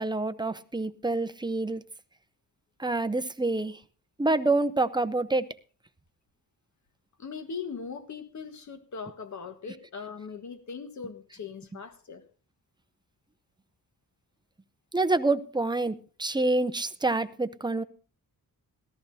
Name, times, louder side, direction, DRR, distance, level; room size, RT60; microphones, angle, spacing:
voice 1, 0.0-1.8 2.8-3.8 4.2-5.4 14.9-17.8, right 2 dB, 10° right, 0.6 m, -27 dB
voice 2, 7.2-12.2, left 5 dB, 50° left, 1.5 m, -40 dB
19.0 x 13.5 x 2.7 m
wide cardioid pair, 125°, 36 cm